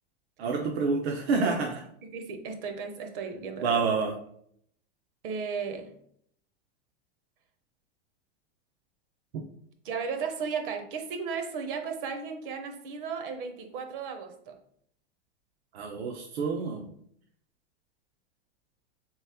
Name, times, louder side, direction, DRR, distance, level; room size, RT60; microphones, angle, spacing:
voice 1, 0.4-1.8 3.6-4.1 15.7-16.8, right 4 dB, 85° right, 0 dB, 0.7 m, -28 dB
voice 2, 1.3-1.8 2.0-4.0 5.2-5.9 9.8-14.6, right 5 dB, 55° right, 6 dB, 0.7 m, -35 dB
3.4 x 3.1 x 3.3 m, 0.66 s
supercardioid pair, 150°, 31 cm